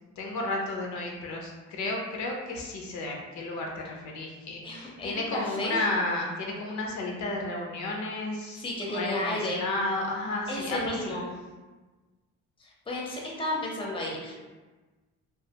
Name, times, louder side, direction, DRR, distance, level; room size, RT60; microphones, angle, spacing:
voice 1, 0.2-11.1, left 2 dB, 70° left, 0 dB, 0.5 m, -32 dB
voice 2, 4.6-5.8 8.6-9.7 10.5-11.3 12.6-14.4, left 1 dB, 15° left, -3 dB, 0.6 m, -33 dB
2.3 x 2.2 x 2.7 m, 1.2 s
cardioid pair, 90°, 30 cm